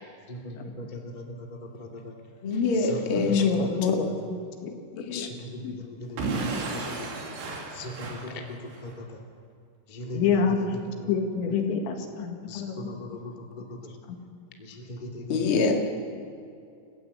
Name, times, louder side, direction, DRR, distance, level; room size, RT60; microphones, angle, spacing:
voice 1, 0.3-2.1 2.8-3.8 5.4-7.1 7.7-9.2 9.9-10.7 11.0-11.5 12.5-13.9 14.6-15.5, left 1 dB, 20° left, 0 dB, 1.2 m, -39 dB
voice 2, 2.4-4.0 5.0-5.3 15.3-15.7, left 3 dB, 40° left, 2 dB, 2.1 m, -26 dB
voice 3, 3.2-4.1 4.6-5.3 5.6-5.8 10.1-10.6 11.1-13.0 14.1-14.2, left 6 dB, 80° left, 3 dB, 4.2 m, -26 dB
Explosion / Shatter, 6.2-8.9, right 3 dB, 70° right, 4.7 m, -33 dB
29.0 x 15.5 x 8.2 m, 2.5 s
omnidirectional pair, 5.1 m